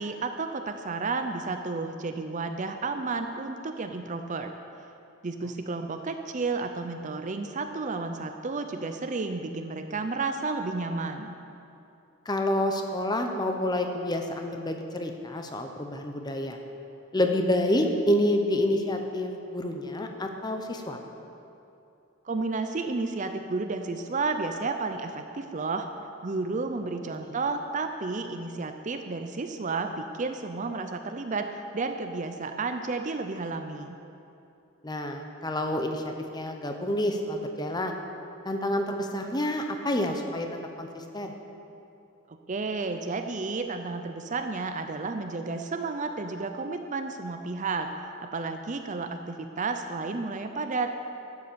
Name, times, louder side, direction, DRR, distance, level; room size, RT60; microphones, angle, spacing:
voice 1, 0.0-4.5 5.2-11.4 22.2-25.9 26.2-34.0 42.3-47.9 48.2-50.9, right 3 dB, 35° right, 7 dB, 0.5 m, -32 dB
voice 2, 12.3-16.6 17.1-21.0 27.1-27.3 34.8-38.0 38.4-40.5 40.8-41.3, left 1 dB, 20° left, 4 dB, 0.8 m, -28 dB
12.0 x 8.1 x 6.8 m, 2.8 s
head